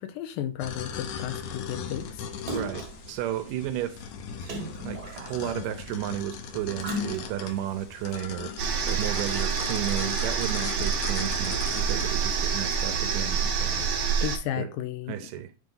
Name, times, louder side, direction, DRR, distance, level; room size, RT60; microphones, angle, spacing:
voice 1, 0.0-2.2 13.8-13.9 14.2-15.3, left 11 dB, 85° left, 2.4 m, -34 dB
sound 1, 0.6-13.0, left 7 dB, 70° left, 1.9 m, -39 dB
Splash splatter, 2.5-3.1 4.4-5.6 6.8-7.6 8.2-8.3, left 1 dB, 45° right, 1.3 m, -36 dB
voice 2, 2.5-4.0 4.8-14.0 14.6-14.7 15.1-15.5, right 12 dB, 80° right, 2.2 m, -33 dB
sound 2, 8.6-14.4, right 6 dB, 60° right, 1.7 m, -27 dB
9.6 x 4.0 x 3.8 m
omnidirectional pair, 4.1 m